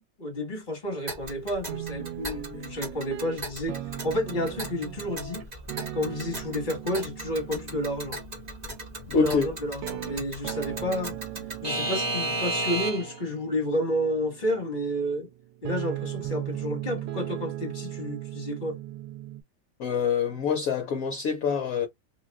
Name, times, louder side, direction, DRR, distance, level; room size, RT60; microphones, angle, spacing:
voice 1, 0.2-5.5 5.9-8.2 9.1-11.2 11.6-15.3 15.6-18.8, left 1 dB, 30° left, 1.5 m, -30 dB
Alarm / Clock, 1.1-13.2, right 1 dB, 25° right, 1.1 m, -35 dB
sound 1, 1.7-19.4, right 14 dB, 85° right, 1.3 m, -38 dB
voice 2, 9.1-9.5 19.8-21.9, left 5 dB, 60° left, 1.0 m, -25 dB
3.1 x 2.3 x 3.4 m
omnidirectional pair, 1.9 m